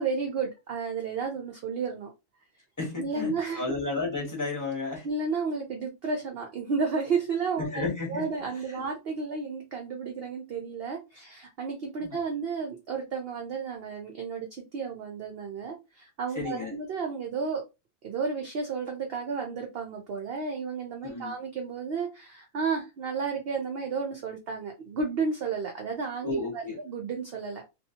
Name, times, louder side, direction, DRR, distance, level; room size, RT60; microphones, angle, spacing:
voice 1, 0.0-2.1 3.0-3.6 5.0-7.8 8.1-17.6 18.0-27.6, right 5 dB, 65° right, 0.6 m, -32 dB
voice 2, 2.8-5.1 7.6-8.2 8.7-8.9 12.0-12.2 16.3-16.7 21.0-21.3 26.2-26.8, left 3 dB, 15° left, 0.8 m, -32 dB
2.7 x 2.3 x 2.7 m
omnidirectional pair, 1.5 m